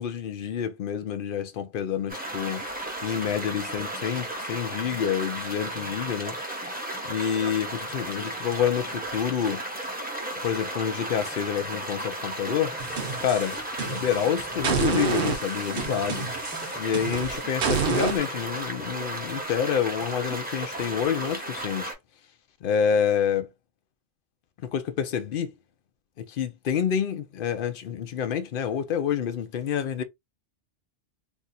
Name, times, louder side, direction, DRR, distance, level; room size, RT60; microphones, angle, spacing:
voice 1, 0.0-2.7 3.0-6.3 7.1-9.6 10.4-12.7 13.2-16.3 16.8-21.9 22.6-23.5 24.6-25.5 26.2-30.0, left 8 dB, 60° left, 0.6 m, -28 dB
sound 1, 2.1-21.9, right 1 dB, 10° right, 0.7 m, -34 dB
sound 2, 12.8-14.2 14.6-18.2, right 5 dB, 55° right, 0.8 m, -28 dB
2.6 x 2.4 x 4.0 m
omnidirectional pair, 1.3 m